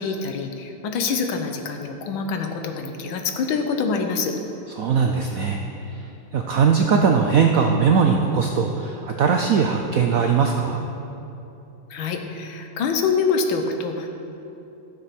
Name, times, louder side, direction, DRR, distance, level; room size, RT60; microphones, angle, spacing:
voice 1, 0.0-4.3 11.9-14.1, left 5 dB, 75° left, 5 dB, 1.7 m, -25 dB
voice 2, 4.8-5.6 6.3-10.8, right 6 dB, 75° right, 3 dB, 0.8 m, -20 dB
13.0 x 7.2 x 6.0 m, 2.9 s
omnidirectional pair, 2.2 m